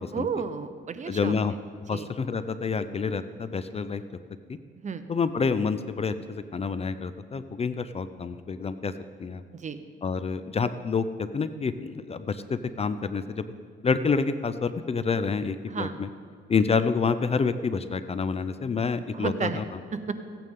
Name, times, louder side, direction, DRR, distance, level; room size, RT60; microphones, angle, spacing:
voice 1, 0.1-1.3 1.9-2.1 4.7-5.0 9.5-9.8 15.7-15.9 19.1-19.6 19.9-20.1, right 6 dB, 35° right, 11 dB, 0.7 m, -32 dB
voice 2, 1.1-1.5 1.9-4.0 4.5-4.6 5.1-8.9 9.2-9.4 10.0-13.5 13.8-16.1 16.5-19.7, left 5 dB, 30° left, 12 dB, 0.5 m, -28 dB
15.5 x 9.2 x 3.7 m, 2.2 s
cardioid pair, 90°, 20 cm